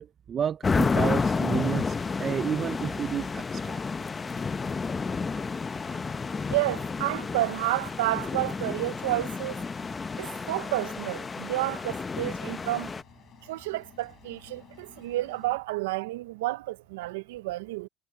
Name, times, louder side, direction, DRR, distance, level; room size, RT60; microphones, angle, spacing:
voice 1, 0.0-3.8 5.3-5.4 5.9-6.0, right 8 dB, 35° right, 0.4 m, -31 dB
sound 1, 0.6-13.0, left 4 dB, 20° left, 0.7 m, -31 dB
Engine, 2.0-15.6, left 10 dB, 40° left, 7.5 m, -54 dB
voice 2, 6.5-9.6 10.2-12.9 13.4-17.9, right 18 dB, 90° right, 0.6 m, -30 dB
supercardioid pair, 110°, 0 cm